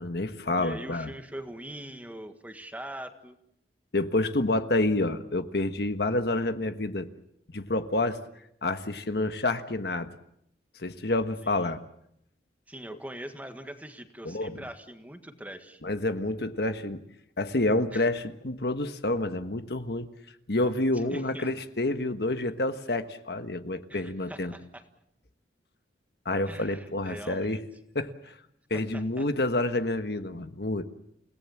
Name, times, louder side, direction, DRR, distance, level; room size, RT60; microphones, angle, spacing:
voice 1, 0.0-1.1 3.9-7.1 7.5-8.2 8.6-10.1 10.8-11.8 14.2-14.6 15.8-17.0 17.4-20.1 20.5-24.5 26.2-27.6 27.9-28.3 28.7-30.8, left 2 dB, 65° left, 9 dB, 1.4 m, -28 dB
voice 2, 0.6-3.4 11.4-11.7 12.7-15.8 17.9-18.1 20.9-21.5 23.9-24.8 26.5-27.7 28.7-29.2, right 1 dB, 10° right, 7 dB, 1.6 m, -42 dB
29.5 x 18.0 x 7.3 m, 0.74 s
head